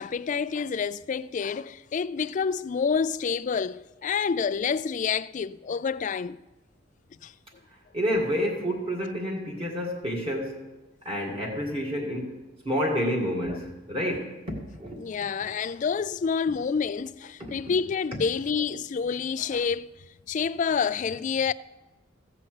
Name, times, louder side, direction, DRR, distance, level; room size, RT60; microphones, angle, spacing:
voice 1, 0.0-6.4 7.2-7.3 13.5-13.6 15.0-19.9 20.3-21.5, left 6 dB, 40° left, 0.3 m, -28 dB
voice 2, 7.9-10.6 11.1-12.4 12.7-15.0 17.4-17.5, equal, 30° right, 1.9 m, -29 dB
15.5 x 5.9 x 7.8 m
head